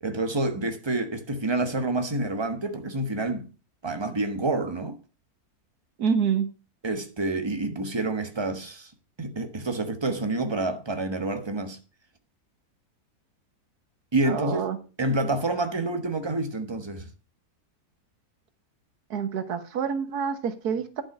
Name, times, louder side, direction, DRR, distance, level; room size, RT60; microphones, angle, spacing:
voice 1, 0.0-3.5 3.8-5.0 6.8-8.9 9.2-11.8 14.1-17.1, right 2 dB, 20° right, 1.2 m, -28 dB
voice 2, 6.0-6.5 14.3-14.8 19.1-21.0, right 7 dB, 85° right, 1.7 m, -27 dB
11.0 x 6.2 x 6.0 m
omnidirectional pair, 1.6 m